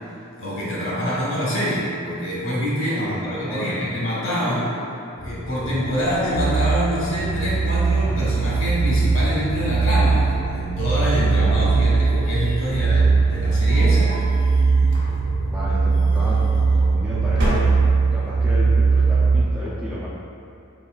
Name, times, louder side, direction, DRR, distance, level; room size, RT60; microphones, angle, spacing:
voice 1, 0.4-4.7 5.1-14.1, equal, 60° left, -7 dB, 1.3 m, -25 dB
voice 2, 3.0-3.8 15.5-20.1, equal, 5° right, -9 dB, 0.4 m, -32 dB
sound 1, 5.2-17.7, left 1 dB, 40° left, 0.8 m, -33 dB
sound 2, 6.3-19.4, right 4 dB, 85° right, 0.4 m, -20 dB
sound 3, 13.1-14.3 14.8-15.5 16.5-17.0 17.3-18.2, equal, 55° right, 0.9 m, -28 dB
4.3 x 3.7 x 2.4 m, 2.6 s
head